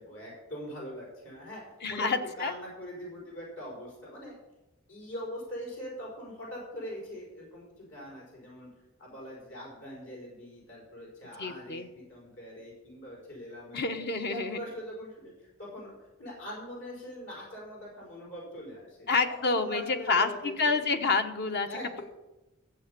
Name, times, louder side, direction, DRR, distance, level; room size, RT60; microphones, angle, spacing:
voice 1, 0.0-1.6 1.9-4.4 4.9-8.7 9.0-15.9 16.2-20.7 21.7-22.0, equal, 70° left, -4 dB, 5.3 m, -42 dB
voice 2, 1.8-2.5 11.4-11.9 13.7-14.6 19.1-20.3 20.6-21.7, left 4 dB, 55° left, 7 dB, 1.1 m, -28 dB
13.5 x 7.8 x 6.8 m, 0.99 s
head